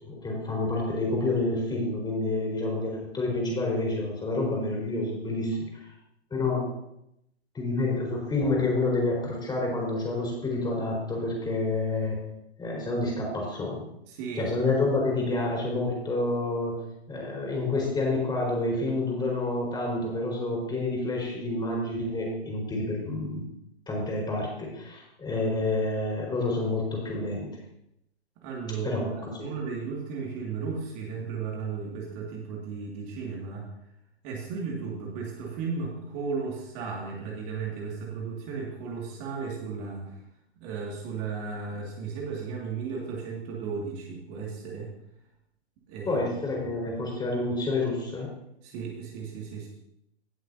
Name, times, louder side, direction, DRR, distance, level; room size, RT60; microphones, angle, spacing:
voice 1, 0.0-5.9 6.3-6.7 7.5-12.2 12.6-13.8 14.4-16.8 17.1-23.5 23.9-27.5 28.8-29.5 46.0-48.3, left 2 dB, 15° left, -2 dB, 4.7 m, -28 dB
voice 2, 14.1-14.5 28.4-29.0 29.4-33.7 34.2-40.2 40.6-44.9 45.9-46.2 46.6-46.8 48.6-49.7, right 5 dB, 35° right, -2 dB, 2.3 m, -35 dB
17.5 x 7.7 x 2.8 m, 0.80 s
figure-of-eight pair, 115°, 33 cm